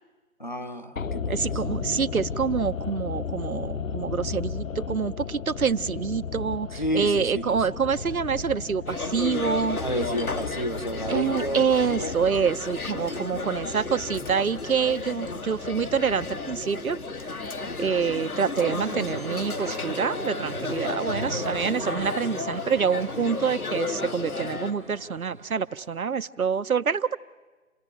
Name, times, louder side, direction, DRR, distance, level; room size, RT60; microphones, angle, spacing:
voice 1, 0.4-1.5 6.7-7.7 9.8-11.7 11.9-12.3, equal, 35° left, 7 dB, 0.8 m, -31 dB
sound 1, 1.0-19.2 19.4-19.5, left 5 dB, 70° left, 0.7 m, -36 dB
voice 2, 1.3-9.8 11.1-17.0 17.8-27.2, right 6 dB, 80° right, 15 dB, 1.0 m, -26 dB
sound 2, 8.9-24.7, left 3 dB, 90° left, 1.9 m, -33 dB
sound 3, 18.6-26.0, right 1 dB, 35° right, 0.9 m, -39 dB
29.0 x 18.0 x 9.3 m, 1.3 s
figure-of-eight pair, 180°, 42 cm